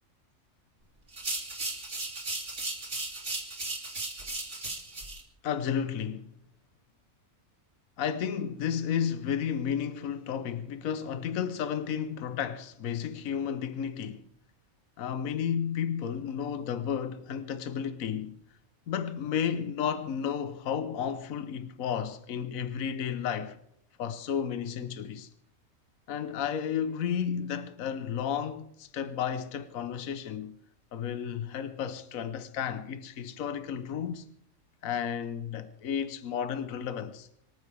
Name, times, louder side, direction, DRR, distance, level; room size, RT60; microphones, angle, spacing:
sound 1, 1.1-5.2, right 2 dB, 55° right, 3.4 m, -36 dB
voice 1, 5.4-6.3 8.0-14.2 15.0-18.4 18.9-23.6 24.0-25.3 26.1-30.6 30.9-34.2 34.8-37.3, left 8 dB, 75° left, 1.3 m, -32 dB
26.0 x 14.0 x 3.4 m
omnidirectional pair, 1.5 m